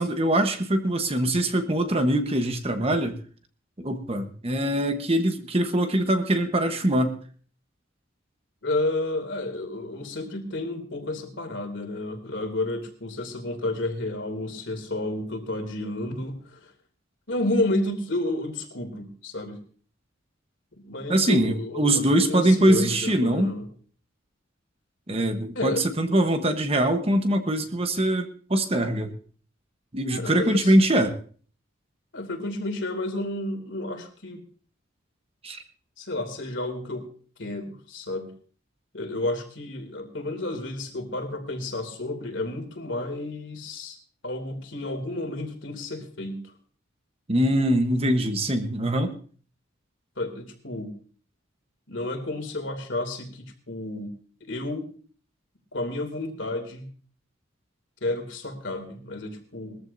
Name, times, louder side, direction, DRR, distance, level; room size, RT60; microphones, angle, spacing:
voice 1, 0.0-3.2 3.8-7.2 21.1-23.6 25.1-29.1 29.9-31.1 35.4-35.6 47.3-49.1, right 1 dB, 30° right, 7 dB, 1.1 m, -23 dB
voice 2, 8.6-16.7 17.3-19.6 20.8-22.0 22.3-23.7 25.5-25.8 30.1-30.7 32.1-34.4 36.0-37.1 37.4-38.3 38.9-44.0 44.2-46.5 50.2-50.9 51.9-54.1 54.4-54.9 55.7-56.9 58.0-59.8, left 2 dB, 65° left, 4 dB, 2.8 m, -31 dB
21.0 x 14.0 x 2.7 m, 0.43 s
head